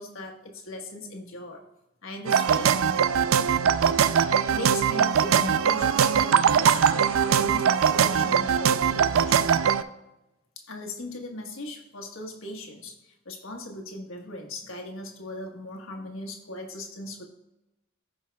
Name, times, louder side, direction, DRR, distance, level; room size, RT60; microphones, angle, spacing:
voice 1, 0.0-1.6 2.0-2.7 4.5-9.5 10.6-17.3, left 1 dB, 80° left, 1 dB, 1.4 m, -39 dB
sound 1, 2.3-9.8, right 7 dB, 85° right, 0.4 m, -21 dB
15.5 x 5.4 x 2.3 m, 0.92 s
head